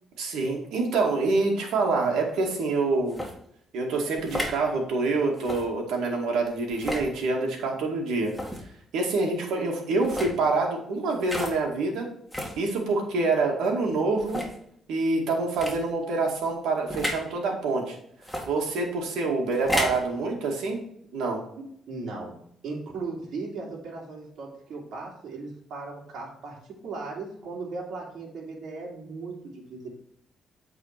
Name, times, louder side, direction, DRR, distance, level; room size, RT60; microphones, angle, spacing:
voice 1, 0.2-3.2 3.7-8.3 8.9-12.1 12.6-14.4 14.9-18.0 18.5-20.8 21.1-21.4, right 3 dB, 85° right, 0 dB, 2.1 m, -26 dB
sound 1, 3.1-3.3 4.2-4.6 5.4-5.6 6.7-7.1 8.3-8.6 10.0-10.3 11.2-11.6 12.3-12.6 13.3-13.4 14.2-14.6 15.5-15.8 16.9-17.2 18.2-18.5 19.5-20.0, equal, ahead, 2.1 m, -31 dB
voice 2, 21.9-22.3 22.6-26.6 26.8-29.9, right 3 dB, 70° right, -3 dB, 2.5 m, -37 dB
8.4 x 4.2 x 5.9 m, 0.70 s
cardioid pair, 90°, 0 cm